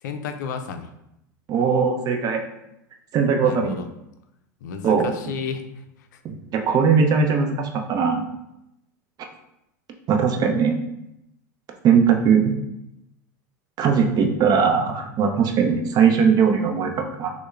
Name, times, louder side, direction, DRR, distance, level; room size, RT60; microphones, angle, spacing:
voice 1, 0.0-0.9 3.4-3.9 4.6-5.8 6.1-6.2, left 6 dB, 75° left, 7 dB, 0.4 m, -32 dB
voice 2, 1.5-2.4 3.1-3.8 4.8-5.1 6.2-8.2 10.1-10.8 11.8-12.5 13.8-17.3, right 6 dB, 40° right, 4 dB, 0.6 m, -19 dB
6.2 x 2.1 x 2.3 m, 0.84 s
hypercardioid pair, 90°, 10 cm